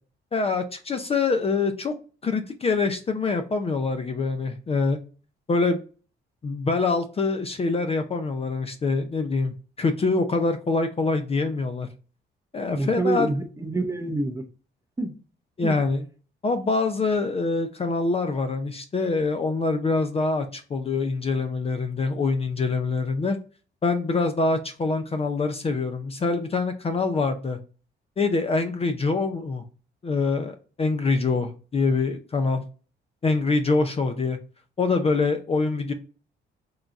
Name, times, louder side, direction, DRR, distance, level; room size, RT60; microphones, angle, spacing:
voice 1, 0.3-2.0 2.2-5.0 5.5-5.8 6.4-11.9 12.5-13.3 15.6-16.1 16.4-23.4 23.8-27.6 28.2-29.6 30.0-32.6 33.2-34.4 34.8-35.9, left 3 dB, 30° left, 0.5 m, -25 dB
voice 2, 12.7-14.5 15.0-15.1 15.6-15.8, right 2 dB, 15° right, 0.7 m, -27 dB
3.8 x 2.3 x 4.0 m
cardioid pair, 90°, 20 cm